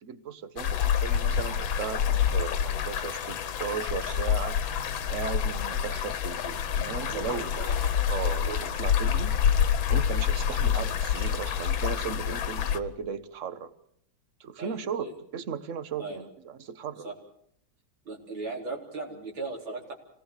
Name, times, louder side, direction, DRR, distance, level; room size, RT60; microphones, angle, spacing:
voice 1, 0.0-4.6 5.1-7.7 8.1-9.4 9.9-13.7 14.4-17.1, right 7 dB, 45° right, 13 dB, 1.3 m, -36 dB
sound 1, 0.6-12.8, left 8 dB, 75° left, 1.8 m, -27 dB
voice 2, 7.1-7.9 8.4-8.6 14.6-15.1 16.0-16.2 17.0-17.2 18.0-19.9, right 3 dB, 80° right, 0 dB, 4.7 m, -38 dB
26.5 x 18.0 x 6.7 m, 0.66 s
omnidirectional pair, 2.2 m